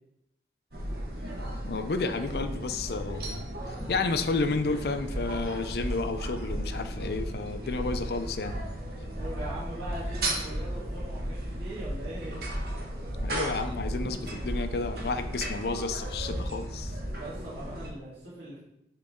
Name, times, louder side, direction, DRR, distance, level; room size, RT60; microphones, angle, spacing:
sound 1, 0.7-17.9, right 1 dB, 60° right, 1.3 m, -35 dB
voice 1, 1.7-3.4 3.7-8.6 13.2-16.9, left 3 dB, 60° left, 9 dB, 0.5 m, -31 dB
voice 2, 9.1-12.4 16.9-18.6, right 1 dB, 80° right, -9 dB, 1.9 m, -41 dB
7.6 x 4.0 x 3.6 m, 0.85 s
head